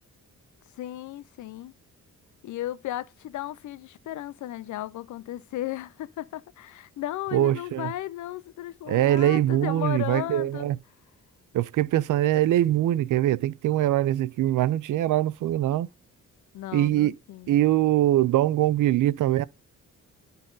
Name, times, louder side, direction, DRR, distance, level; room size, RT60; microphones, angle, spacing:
voice 1, 0.7-1.7 2.4-10.7 16.5-17.6, left 14 dB, 70° left, 0.5 m, -35 dB
voice 2, 7.3-7.9 8.9-10.8 11.5-15.9 16.7-17.1 17.5-19.4, right 13 dB, 80° right, 0.5 m, -23 dB
11.0 x 4.0 x 3.9 m
wide cardioid pair, 155°, 31 cm